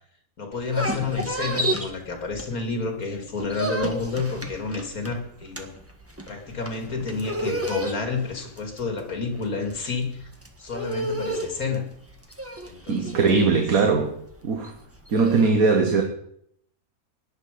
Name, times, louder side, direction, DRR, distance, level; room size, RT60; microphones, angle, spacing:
voice 1, 0.4-5.7 6.3-10.3 10.6-11.9 12.7-13.6, left 4 dB, 80° left, 5 dB, 2.8 m, -30 dB
sound 1, 0.5-2.9 3.2-15.5, right 1 dB, 10° right, 1.5 m, -32 dB
voice 2, 12.9-14.2 14.4-14.7 15.1-16.0, right 4 dB, 75° right, 4 dB, 1.8 m, -20 dB
18.0 x 10.5 x 5.1 m, 0.69 s
omnidirectional pair, 1.5 m